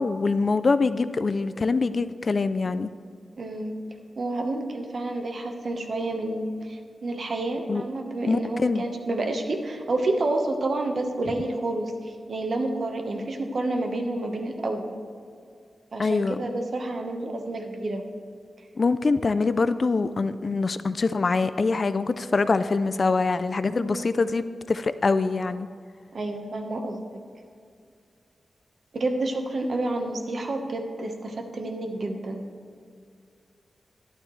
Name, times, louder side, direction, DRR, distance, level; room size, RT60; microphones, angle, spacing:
voice 1, 0.0-2.9 7.7-7.8 8.3-8.9 16.0-16.4 18.8-25.7, left 4 dB, 40° left, 13 dB, 0.3 m, -24 dB
voice 2, 3.4-3.8 4.2-15.0 15.9-18.0 23.8-24.0 26.1-27.0 28.9-32.5, right 2 dB, 50° right, 4 dB, 1.1 m, -29 dB
12.0 x 11.5 x 3.2 m, 2.3 s
wide cardioid pair, 140°, 0 cm